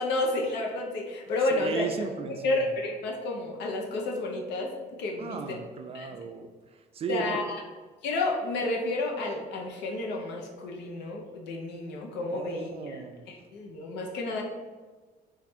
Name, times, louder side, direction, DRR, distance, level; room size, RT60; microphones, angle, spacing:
voice 1, 0.0-1.9 2.3-4.7 5.0-5.4 5.9-6.2 7.1-7.6 8.0-14.4, left 2 dB, 85° left, 0 dB, 0.8 m, -31 dB
voice 2, 1.5-2.7 5.2-7.4 12.3-13.2, right 6 dB, 35° right, 6 dB, 0.4 m, -36 dB
3.3 x 2.5 x 4.2 m, 1.4 s
cardioid pair, 110°, 17 cm